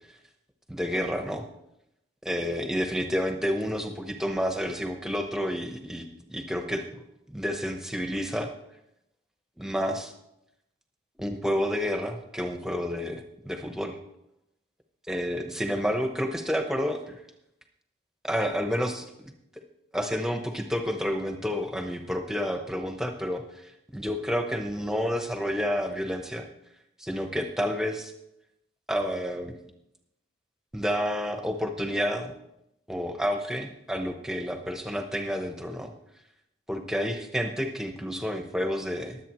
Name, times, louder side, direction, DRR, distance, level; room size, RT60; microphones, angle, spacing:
voice 1, 0.7-1.4 2.2-6.8 7.3-8.5 9.6-10.1 11.2-14.0 15.1-17.2 18.2-19.3 19.9-26.5 27.0-28.1 28.9-29.5 30.7-32.3 32.9-35.9 36.7-39.2, equal, 5° right, 4 dB, 1.0 m, -30 dB
22.0 x 8.0 x 3.1 m, 0.83 s
head